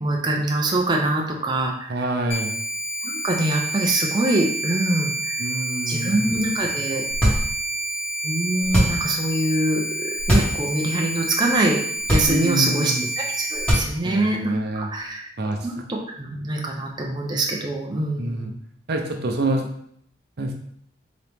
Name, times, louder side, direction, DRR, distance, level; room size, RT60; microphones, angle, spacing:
voice 1, 0.0-2.0 3.0-5.4 5.9-7.1 8.2-11.8 12.1-15.3 15.6-18.6, right 1 dB, 25° right, 0 dB, 0.5 m, -24 dB
voice 2, 1.9-2.5 5.4-6.4 12.3-13.1 14.0-14.9 15.4-15.6 18.2-18.5 18.9-19.7 20.4-20.5, right 2 dB, 60° right, 3 dB, 0.7 m, -26 dB
sound 1, 2.3-13.7, right 1 dB, 35° left, 0.8 m, -29 dB
sound 2, 7.1-7.8 8.6-9.2 10.2-10.6 11.0-11.1 12.0-12.7 13.5-14.2, equal, 5° left, 1.3 m, -21 dB
3.9 x 2.9 x 3.4 m, 0.66 s
head